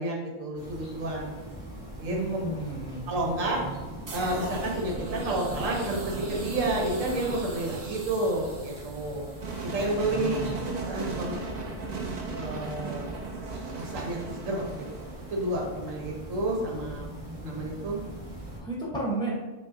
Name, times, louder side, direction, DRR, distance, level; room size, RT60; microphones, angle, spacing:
voice 1, 0.0-1.3 2.0-2.2 3.1-3.6 4.1-9.3 9.6-11.4 12.3-13.1 13.7-17.1 17.4-18.0, right 1 dB, 80° right, -1 dB, 1.2 m, -30 dB
sound 1, 0.6-18.6, right 1 dB, 25° right, 1.0 m, -42 dB
voice 2, 2.1-3.1 10.1-10.8 18.6-19.3, right 2 dB, 5° left, -5 dB, 0.7 m, -33 dB
sound 2, 4.1-15.9, right 3 dB, 50° right, 0.5 m, -37 dB
5.2 x 2.6 x 2.5 m, 1.2 s
omnidirectional pair, 1.3 m